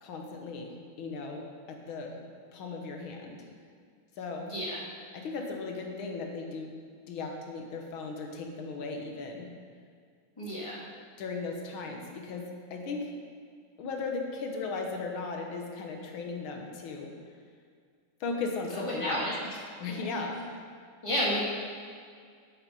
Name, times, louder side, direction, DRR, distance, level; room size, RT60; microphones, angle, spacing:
voice 1, 0.0-2.2 2.5-3.5 4.2-4.5 5.1-6.7 7.1-9.5 11.2-13.1 13.8-17.1 18.2-19.3 19.8-20.5, left 4 dB, 85° left, 2 dB, 1.9 m, -37 dB
voice 2, 4.5-4.8 10.4-10.8 18.7-19.3 19.9-20.2 21.0-21.4, equal, 15° left, -6 dB, 1.8 m, -31 dB
7.8 x 7.0 x 5.4 m, 2.1 s
omnidirectional pair, 2.2 m